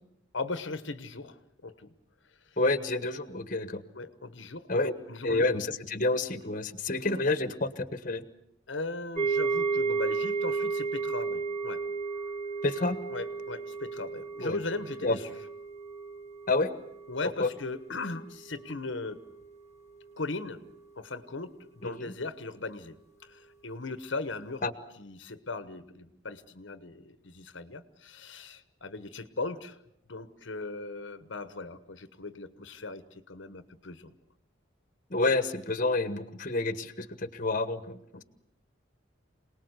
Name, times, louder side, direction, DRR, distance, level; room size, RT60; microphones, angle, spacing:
voice 1, 0.3-1.9 3.9-5.4 8.7-11.8 13.1-15.3 17.1-19.2 20.2-20.6 21.0-23.0 23.2-24.7 25.0-29.8 30.1-34.1 38.1-38.2, left 3 dB, 70° left, 12 dB, 1.1 m, -38 dB
voice 2, 2.6-3.8 4.7-4.9 5.2-8.2 12.6-13.0 14.4-14.6 15.0-15.2 16.5-16.7 17.4-17.5 21.8-22.1 24.6-24.7 35.1-38.0, left 2 dB, 40° left, 12 dB, 1.3 m, -29 dB
sound 1, 9.2-18.3 18.5-18.8 19.3-19.4, right 4 dB, 15° left, 1.7 m, -33 dB
27.5 x 19.5 x 8.1 m, 0.77 s
head